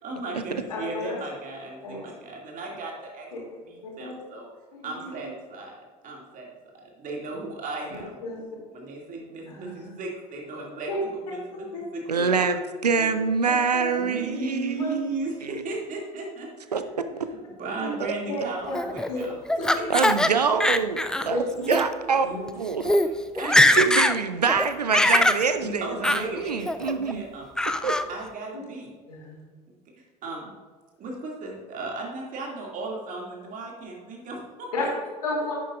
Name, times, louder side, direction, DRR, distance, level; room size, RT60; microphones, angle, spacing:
voice 1, 0.0-3.3 3.7-4.5 4.8-6.5 6.7-8.2 8.7-12.4 13.9-16.7 17.5-20.6 22.9-23.5 25.6-27.5 28.1-28.9 30.2-30.5 31.0-34.7, right 2 dB, 40° right, -1 dB, 2.3 m, -36 dB
voice 2, 0.7-1.2 1.8-2.0 3.3-3.4 3.8-4.1 4.7-5.3 7.9-8.4 9.5-10.0 10.9-11.0 11.5-11.8 12.4-12.6 13.0-13.1 13.7-13.9 14.8-14.9 17.8-17.9 18.3-18.8 19.1-19.3 19.6-19.8 21.3-21.8 22.2-23.0 28.5-28.6 29.1-29.4 34.7-34.9 35.2-35.6, left 2 dB, 70° left, -3 dB, 2.8 m, -33 dB
voice 3, 12.1-15.2 15.4-15.5 16.7-16.8 19.9-22.3 22.6-22.8 23.4-27.3 27.8-27.9, right 5 dB, 80° right, 10 dB, 0.5 m, -25 dB
Laughter, 18.7-20.3 20.6-21.3 21.6-21.8 22.5-22.6 22.8-23.1 23.4-24.2 24.5-25.4 26.0-26.2 26.7-27.1 27.6-28.0, left 1 dB, 5° left, 0.4 m, -21 dB
10.5 x 8.2 x 2.5 m, 1.4 s
figure-of-eight pair, 65°, 20 cm